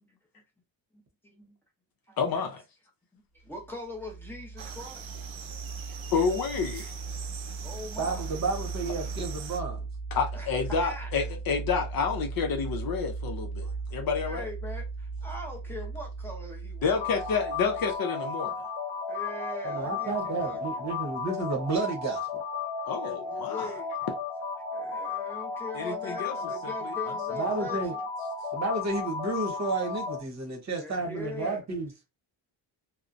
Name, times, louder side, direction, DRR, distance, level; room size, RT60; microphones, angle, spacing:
voice 1, 2.2-2.6 6.1-7.0 10.1-14.4 16.8-18.5 22.9-23.7 25.8-26.4 26.8-26.9 27.5-27.6, left 5 dB, 50° left, 0.6 m, -29 dB
voice 2, 3.1-5.6 5.8-6.0 7.6-8.4 10.3-10.5 10.8-11.1 13.6-13.8 14.2-17.2 19.1-20.9 23.2-23.9 24.7-28.0 30.8-31.6, left 1 dB, 5° left, 0.6 m, -42 dB
sound 1, 3.5-18.0, right 4 dB, 30° left, 1.1 m, -38 dB
sound 2, 4.6-9.6, right 7 dB, 75° right, 0.7 m, -44 dB
voice 3, 8.0-9.8 19.6-22.4 27.4-27.9 28.5-32.1, right 3 dB, 35° right, 0.9 m, -31 dB
sound 3, 16.9-30.2, left 4 dB, 85° left, 0.7 m, -34 dB
2.8 x 2.0 x 2.5 m
cardioid pair, 140°, 47 cm